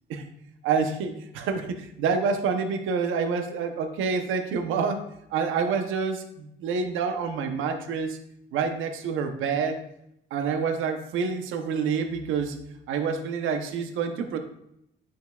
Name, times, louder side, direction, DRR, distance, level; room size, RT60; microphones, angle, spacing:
voice 1, 0.6-5.0 5.3-8.2 8.5-9.8 10.3-12.6 12.9-14.4, right 5 dB, 90° right, 6 dB, 0.8 m, -27 dB
9.3 x 6.3 x 2.4 m, 0.78 s
cardioid pair, 90°, 20 cm